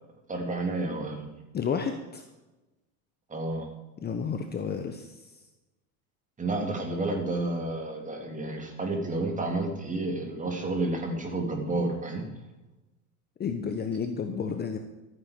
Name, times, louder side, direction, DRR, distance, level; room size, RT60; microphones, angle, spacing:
voice 1, 0.3-1.3 3.3-3.7 6.4-12.2, right 2 dB, 20° right, 3 dB, 3.2 m, -30 dB
voice 2, 1.5-2.2 4.0-5.1 13.4-14.8, left 6 dB, 25° left, 6 dB, 1.2 m, -31 dB
13.5 x 9.6 x 6.9 m, 1.1 s
supercardioid pair, 115°, 42 cm